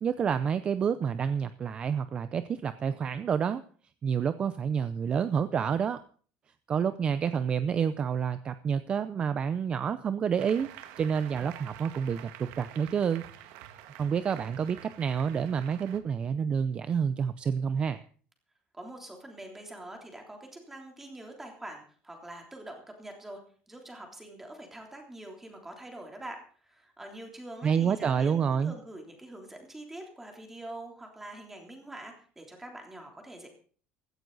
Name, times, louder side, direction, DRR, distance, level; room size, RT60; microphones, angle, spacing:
voice 1, 0.0-3.6 4.0-6.0 6.7-10.7 11.0-13.2 13.9-18.0 27.6-28.7, right 7 dB, 25° right, 12 dB, 0.6 m, -28 dB
Applause, 10.4-16.0, right 12 dB, 80° right, 1.8 m, -48 dB
voice 2, 18.7-23.4 23.7-33.5, right 1 dB, 5° right, 2 dB, 3.3 m, -45 dB
16.0 x 14.0 x 4.0 m, 0.43 s
cardioid pair, 175°, 4 cm